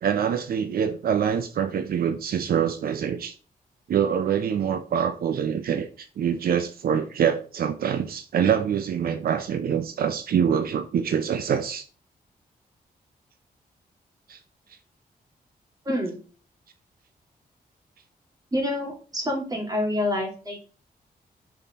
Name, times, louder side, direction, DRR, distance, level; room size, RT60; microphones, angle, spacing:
voice 1, 0.0-3.3 3.9-11.8 14.3-14.4, right 8 dB, 75° right, 8 dB, 0.6 m, -25 dB
voice 2, 15.9-16.2 18.5-20.6, left 1 dB, 25° right, -1 dB, 2.4 m, -27 dB
5.6 x 4.1 x 5.5 m, 0.39 s
wide cardioid pair, 135°, 16 cm